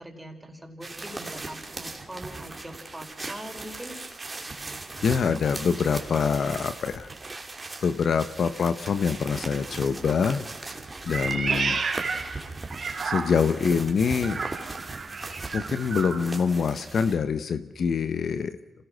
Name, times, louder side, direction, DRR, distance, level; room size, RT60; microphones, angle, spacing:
voice 1, 0.0-4.0, right 1 dB, 10° right, 3 dB, 4.7 m, -41 dB
sound 1, 0.8-17.2, right 3 dB, 30° right, 2.9 m, -38 dB
voice 2, 5.0-7.1 7.8-10.5 11.0-12.0 13.0-14.4 15.5-18.6, left 6 dB, 65° left, 11 dB, 0.9 m, -25 dB
Meow, 11.1-13.6 14.2-16.2, right 5 dB, 55° right, 2.5 m, -31 dB
27.0 x 17.5 x 6.3 m, 0.99 s
supercardioid pair, 55°, 0 cm